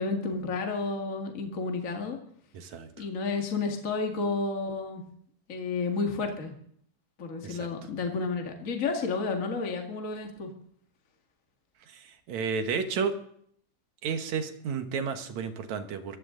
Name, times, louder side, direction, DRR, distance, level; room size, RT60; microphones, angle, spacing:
voice 1, 0.0-2.2 3.0-5.0 5.5-6.5 7.2-10.5, left 4 dB, 30° left, 3 dB, 1.8 m, -31 dB
voice 2, 2.5-2.9 7.4-7.7 11.9-12.0 12.3-13.1 14.0-16.2, right 6 dB, 65° right, 8 dB, 2.5 m, -31 dB
23.0 x 15.5 x 3.9 m, 0.64 s
omnidirectional pair, 3.7 m